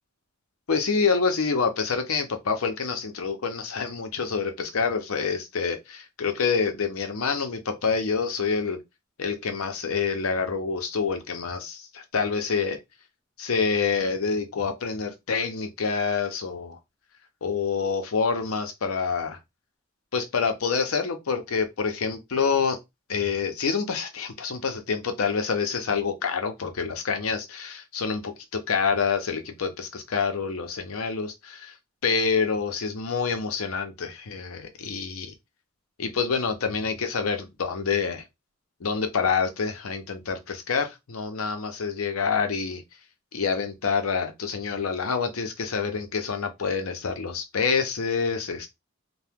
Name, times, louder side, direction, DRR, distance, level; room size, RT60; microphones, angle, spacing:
voice 1, 0.7-8.8 9.2-12.8 13.4-16.8 17.4-19.4 20.1-22.8 23.1-31.7 32.0-35.3 36.0-38.2 38.8-42.8 43.3-48.7, left 5 dB, 90° left, 0.6 m, -27 dB
2.8 x 2.2 x 3.4 m
head